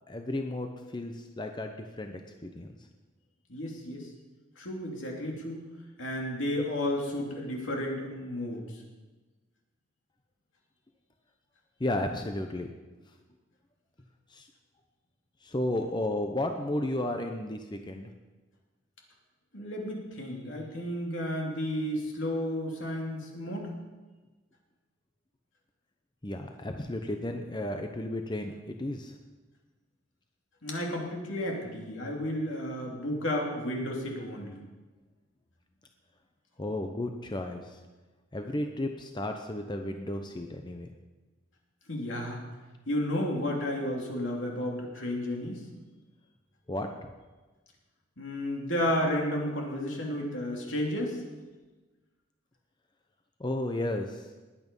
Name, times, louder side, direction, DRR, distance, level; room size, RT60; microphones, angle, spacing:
voice 1, 0.1-2.1 2.4-2.8 11.8-12.7 14.3-14.5 15.4-18.1 26.2-29.1 36.6-37.8 38.3-40.9 46.7-46.9 53.4-54.3, left 1 dB, 25° left, 5 dB, 0.8 m, -33 dB
voice 2, 3.5-4.1 4.6-5.6 6.0-8.6 19.5-23.7 30.6-34.6 41.9-42.4 42.9-45.6 48.2-51.2, left 1 dB, 70° left, 0 dB, 2.9 m, -32 dB
20.0 x 8.6 x 5.4 m, 1.3 s
head